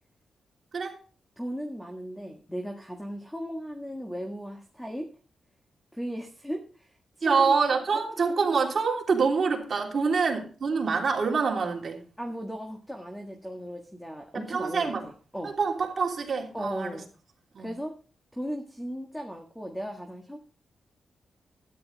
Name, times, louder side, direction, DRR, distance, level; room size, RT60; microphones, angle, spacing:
voice 1, 1.4-5.1 5.9-7.5 8.3-8.4 12.2-15.5 16.5-17.0 17.6-17.9 18.3-20.4, equal, 5° left, 3 dB, 1.5 m, -36 dB
voice 2, 7.2-12.0 14.3-15.0 15.4-17.0 17.5-17.8, right 5 dB, 45° right, 0 dB, 3.0 m, -26 dB
12.5 x 9.8 x 4.0 m, 0.38 s
wide cardioid pair, 125°, 0 cm